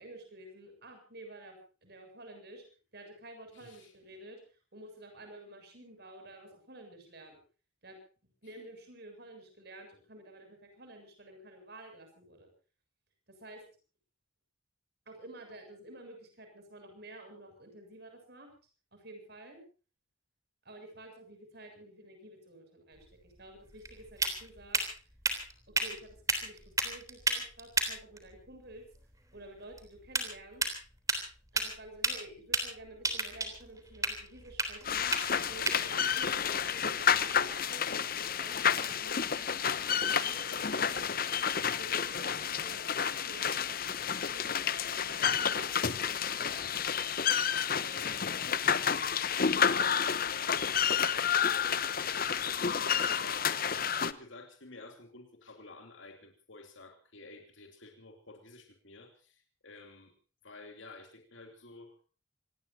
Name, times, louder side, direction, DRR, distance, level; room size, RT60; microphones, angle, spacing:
voice 1, 0.0-2.6 2.9-4.4 4.7-7.4 7.8-8.0 8.4-12.5 13.3-13.6 15.1-18.5 18.9-19.6 20.6-24.8 25.7-28.8 29.3-30.6 31.5-35.1 35.5-41.3 41.6-43.8 44.3-44.6 44.9-46.9 47.7-48.5, right 1 dB, 50° right, 5 dB, 7.3 m, -51 dB
voice 2, 3.5-3.9 49.4-60.1 60.4-61.9, left 2 dB, 70° left, 4 dB, 2.9 m, -52 dB
sound 1, 22.9-37.6, right 3 dB, 15° right, 3.5 m, -36 dB
sound 2, 34.9-54.1, left 7 dB, 45° left, 0.9 m, -30 dB
26.5 x 19.5 x 2.8 m, 0.38 s
head